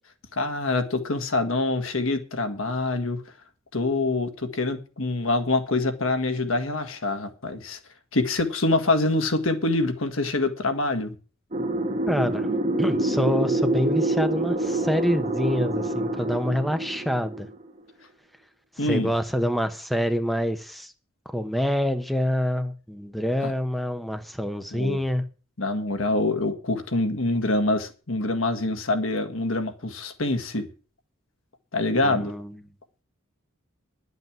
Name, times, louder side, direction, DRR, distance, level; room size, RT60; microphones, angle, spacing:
voice 1, 0.3-3.2 3.7-7.8 8.1-11.1 18.8-19.1 23.4-23.5 24.7-25.0 25.6-30.7 31.7-32.3, left 2 dB, 75° left, 1.7 m, -25 dB
sound 1, 11.5-17.7, right 1 dB, 35° right, 1.9 m, -26 dB
voice 2, 12.0-12.5 12.8-17.5 18.8-20.9 21.3-25.2 32.0-32.6, equal, ahead, 0.9 m, -26 dB
11.0 x 8.1 x 7.5 m
head